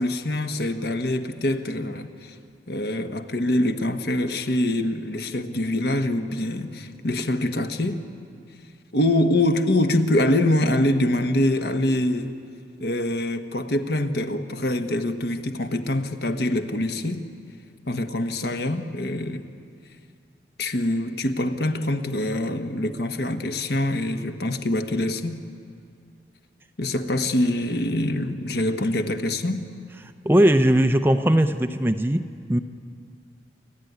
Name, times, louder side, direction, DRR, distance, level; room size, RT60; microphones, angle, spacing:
voice 1, 0.0-2.3 2.7-8.0 8.9-12.3 12.8-17.2 17.9-19.4 20.6-25.4 26.8-29.6, left 1 dB, 70° left, 7 dB, 1.3 m, -24 dB
voice 2, 30.2-32.6, right 1 dB, 10° right, 8 dB, 0.6 m, -19 dB
29.0 x 13.0 x 9.5 m, 2.4 s
head